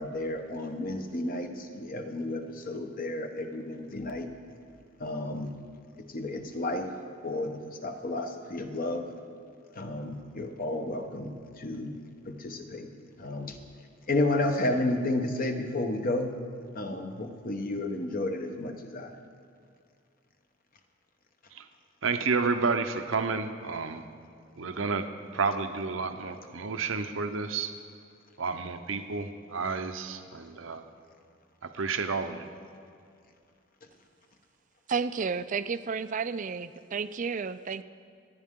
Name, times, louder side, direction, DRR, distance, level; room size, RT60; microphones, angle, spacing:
voice 1, 0.0-4.3 5.0-5.6 6.1-6.9 7.2-9.1 9.7-12.0 12.2-12.9 13.2-13.6 14.1-16.3 16.7-19.1, left 2 dB, 45° left, 5 dB, 1.1 m, -32 dB
voice 2, 22.0-24.0 24.6-25.0 25.3-27.7 28.4-30.8 31.6-32.5, right 4 dB, 80° right, 7 dB, 0.8 m, -30 dB
voice 3, 34.9-37.8, right 5 dB, 40° right, 13 dB, 0.4 m, -31 dB
27.0 x 9.6 x 3.7 m, 2.3 s
head